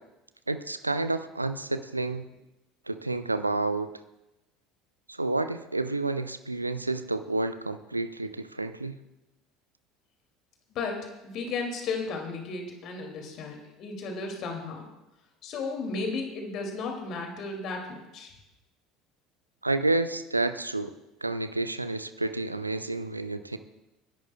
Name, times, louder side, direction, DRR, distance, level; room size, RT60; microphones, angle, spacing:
voice 1, 0.5-2.2 2.9-3.9 5.1-9.0 19.6-20.9 21.2-23.6, right 2 dB, 85° right, 11 dB, 0.5 m, -30 dB
voice 2, 10.7-14.9 15.4-18.3, left 4 dB, 45° left, 3 dB, 2.5 m, -34 dB
28.5 x 11.0 x 2.3 m, 0.97 s
figure-of-eight pair, 65°, 0 cm